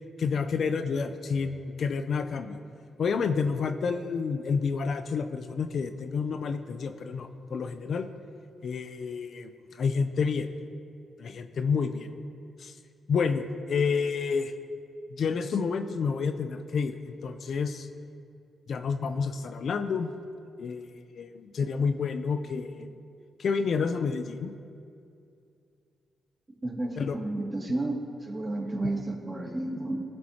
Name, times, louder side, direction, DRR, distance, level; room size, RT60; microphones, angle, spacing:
voice 1, 0.2-2.6 3.0-8.1 8.6-10.5 11.2-12.1 12.6-12.7 13.1-14.5 15.1-17.9 18.7-20.1 20.6-22.9 23.4-24.5 27.0-27.2, left 5 dB, 65° left, 9 dB, 0.6 m, -29 dB
voice 2, 26.6-30.0, right 2 dB, 30° right, 0 dB, 2.3 m, -32 dB
17.5 x 7.5 x 2.9 m, 2.5 s
supercardioid pair, 50°, 0 cm